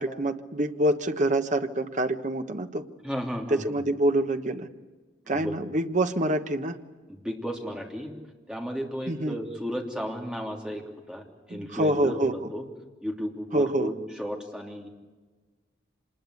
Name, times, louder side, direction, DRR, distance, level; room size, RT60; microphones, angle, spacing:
voice 1, 0.0-2.8 3.5-4.7 5.3-6.8 9.1-9.4 11.5-12.3 13.5-13.9, right 1 dB, 40° right, 8 dB, 1.2 m, -26 dB
voice 2, 3.0-3.7 5.3-5.6 7.2-8.1 8.5-10.8 11.1-12.7 13.0-14.9, equal, 5° right, 1 dB, 3.1 m, -33 dB
26.0 x 21.0 x 8.4 m, 1.3 s
head